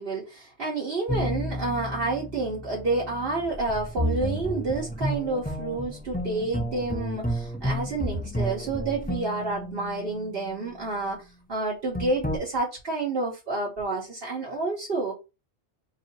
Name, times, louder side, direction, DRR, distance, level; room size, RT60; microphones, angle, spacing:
voice 1, 0.0-11.2 11.5-15.1, right 3 dB, 60° right, 1.2 m, -29 dB
sound 1, 1.1-10.5 11.9-12.4, equal, 15° left, 0.4 m, -31 dB
3.0 x 2.7 x 4.0 m
omnidirectional pair, 1.1 m